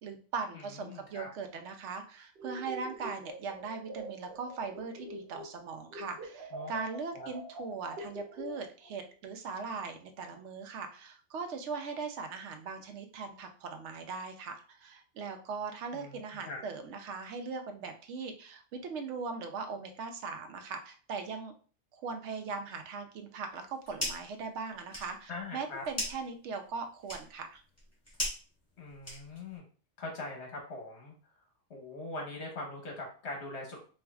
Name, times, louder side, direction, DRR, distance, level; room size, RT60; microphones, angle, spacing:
voice 1, 0.0-21.5 21.9-27.6, right 4 dB, 85° right, 6 dB, 0.9 m, -40 dB
voice 2, 0.5-1.3 6.5-6.7 7.1-7.3 15.9-16.6 25.3-25.8 28.8-29.6 30.0-31.1 31.7-33.8, left 2 dB, 75° left, 0 dB, 1.4 m, -42 dB
sound 1, 2.4-5.6 5.9-8.9, right 2 dB, 60° right, 1.0 m, -44 dB
sound 2, 23.5-24.4 24.7-29.6, left 1 dB, 15° left, 1.3 m, -40 dB
4.4 x 2.4 x 2.3 m, 0.39 s
omnidirectional pair, 1.2 m